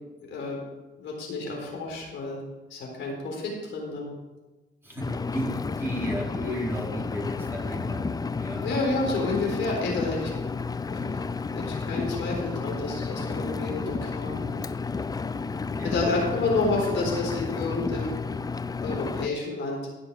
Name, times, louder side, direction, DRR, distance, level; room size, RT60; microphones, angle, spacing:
voice 1, 1.0-2.4 2.7-4.1 8.6-10.3 10.9-11.2 11.5-14.4 15.8-18.1 18.8-19.8, left 3 dB, 75° left, -1 dB, 4.1 m, -29 dB
voice 2, 4.8-8.7 15.8-16.1, equal, 10° right, -5 dB, 4.5 m, -34 dB
Engine, 5.0-19.3, left 4 dB, 20° left, 0.4 m, -31 dB
16.5 x 5.9 x 4.9 m, 1.1 s
cardioid pair, 90°, 20 cm